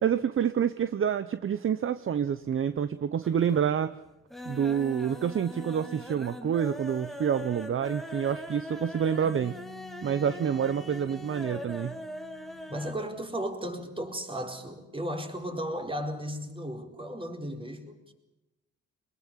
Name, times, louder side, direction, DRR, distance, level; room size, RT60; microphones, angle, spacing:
voice 1, 0.0-3.9 4.5-9.5 10.0-11.9, right 8 dB, 45° right, 13 dB, 0.9 m, -28 dB
sound 1, 2.3-2.9 3.2-3.7 4.0-13.0 13.3-13.4 13.7-13.8, left 1 dB, ahead, 2.2 m, -41 dB
Bass guitar, 9.2-15.5, left 6 dB, 40° left, 2.6 m, -52 dB
voice 2, 12.7-18.1, equal, 15° right, 4 dB, 4.6 m, -35 dB
23.0 x 21.0 x 7.4 m, 0.98 s
cardioid pair, 90°, 30 cm